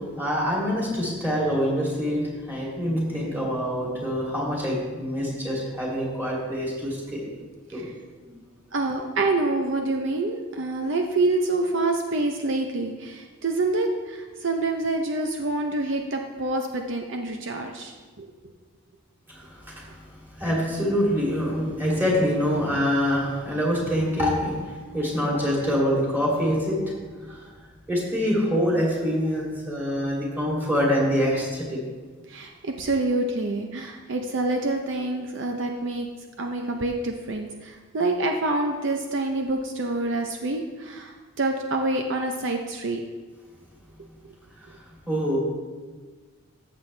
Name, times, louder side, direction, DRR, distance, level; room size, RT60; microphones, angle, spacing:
voice 1, 0.2-7.3 7.7-7.9 19.3-20.0 20.3-26.9 27.3-27.4 27.9-31.8 45.1-45.4, equal, 10° right, -5 dB, 2.6 m, -25 dB
voice 2, 8.7-18.3 32.3-36.1 36.4-43.0, right 2 dB, 60° right, 3 dB, 0.6 m, -27 dB
14.0 x 7.1 x 3.3 m, 1.4 s
head